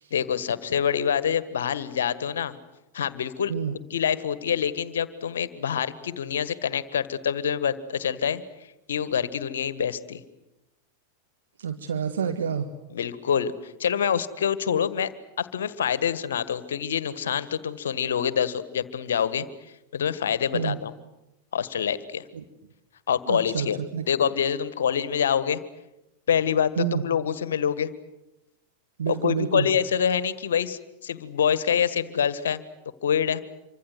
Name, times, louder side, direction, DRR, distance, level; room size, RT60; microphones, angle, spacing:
voice 1, 0.1-2.6 2.9-3.5 3.9-10.2 12.9-15.1 15.4-20.9 21.5-22.3 23.1-23.8 24.1-25.6 26.3-27.9 29.1-32.6 33.0-33.4, left 8 dB, 65° left, 16 dB, 1.5 m, -26 dB
voice 2, 11.6-12.7 20.5-20.8 23.3-23.7 23.9-24.1 26.8-27.0 29.0-29.7, right 7 dB, 65° right, 7 dB, 1.7 m, -28 dB
27.0 x 24.5 x 7.9 m, 0.93 s
figure-of-eight pair, 90°, 0 cm